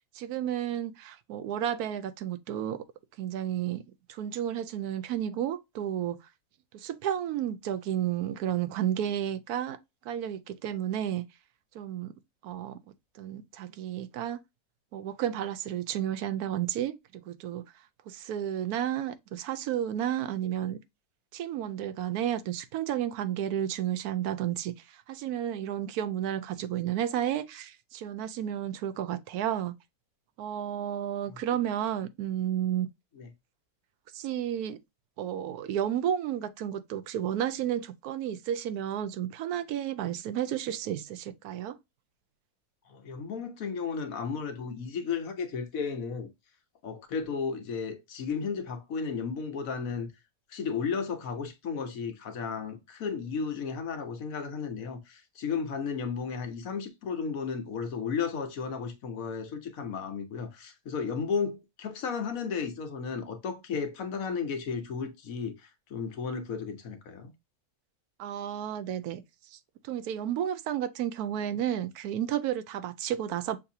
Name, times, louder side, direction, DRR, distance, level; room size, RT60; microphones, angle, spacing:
voice 1, 0.1-2.8 3.2-3.8 4.1-6.2 6.7-9.8 10.0-11.2 11.7-12.1 12.4-12.8 13.2-14.4 14.9-17.6 18.1-20.8 21.3-29.7 30.4-32.9 34.1-34.8 35.2-41.8 68.2-69.2 69.5-69.6 69.8-73.6, right 10 dB, 85° right, 1.1 m, -32 dB
voice 2, 42.9-46.3 46.8-50.1 50.5-65.6 65.9-67.3, left 5 dB, 70° left, 1.2 m, -34 dB
6.4 x 2.7 x 2.7 m
omnidirectional pair, 1.6 m